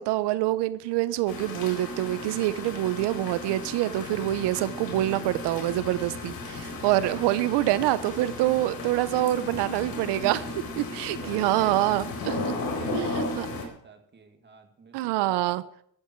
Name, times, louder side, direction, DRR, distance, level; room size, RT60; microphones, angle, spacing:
voice 1, 0.0-10.5 10.8-12.6 12.9-13.5 14.9-15.6, right 15 dB, 85° right, 15 dB, 0.8 m, -26 dB
sound 1, 1.3-13.6, left 2 dB, 60° left, 4.1 m, -35 dB
voice 2, 11.0-12.0 12.5-15.6, right 5 dB, 25° right, 6 dB, 2.3 m, -49 dB
14.0 x 13.5 x 4.6 m, 0.67 s
cardioid pair, 135°, 40 cm